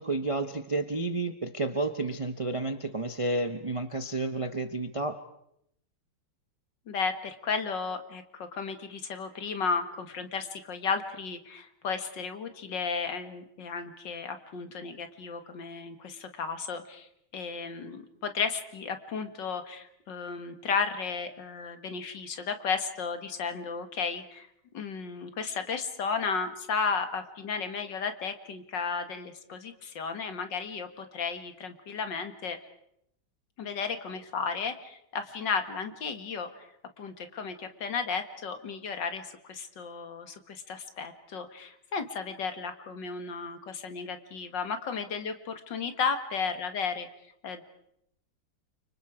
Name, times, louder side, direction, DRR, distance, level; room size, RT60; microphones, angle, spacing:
voice 1, 0.0-5.2, right 2 dB, 50° right, 9 dB, 0.4 m, -31 dB
voice 2, 6.9-17.1 17.3-24.5 24.7-32.6 33.6-36.7 37.0-47.1 47.4-47.6, left 5 dB, 60° left, 8 dB, 2.2 m, -34 dB
30.0 x 25.0 x 4.9 m, 0.75 s
omnidirectional pair, 2.2 m